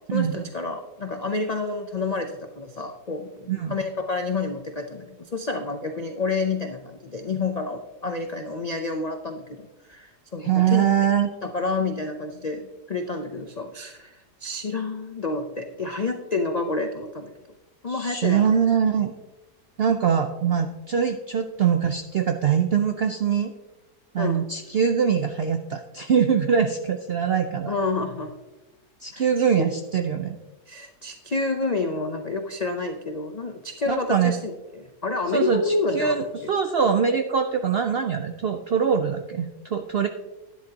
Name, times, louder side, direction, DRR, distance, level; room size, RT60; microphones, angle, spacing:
voice 1, 0.1-10.9 11.4-17.3 17.8-18.5 24.2-24.4 27.7-28.3 29.1-29.2 29.6-29.7 30.7-36.5, left 3 dB, 65° left, 5 dB, 0.4 m, -29 dB
voice 2, 10.4-11.3 17.9-19.1 19.8-23.5 24.1-27.7 29.0-30.4 33.9-34.4 35.3-40.1, right 7 dB, 70° right, 6 dB, 0.5 m, -23 dB
11.5 x 10.5 x 2.8 m, 1.1 s
omnidirectional pair, 1.7 m